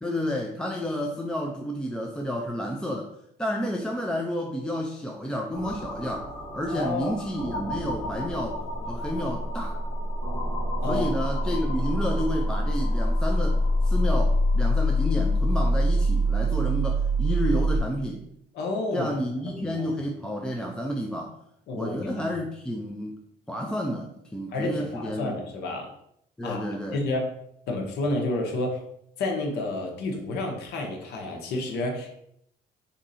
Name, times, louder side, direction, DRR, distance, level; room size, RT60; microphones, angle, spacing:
voice 1, 0.0-3.1 3.4-8.6 8.9-9.8 10.9-18.3 18.9-21.4 21.7-23.2 23.5-25.3 26.4-27.0, equal, 5° left, 1 dB, 0.4 m, -30 dB
sound 1, 5.5-17.8, equal, 40° left, 1.1 m, -26 dB
voice 2, 6.7-7.2 10.8-11.1 18.5-19.1 19.5-20.0 21.7-22.3 24.5-25.9 26.4-27.3 27.7-28.8 29.2-32.1, left 2 dB, 75° left, 2 dB, 1.0 m, -30 dB
3.6 x 2.8 x 4.1 m, 0.73 s
cardioid pair, 110°, 17 cm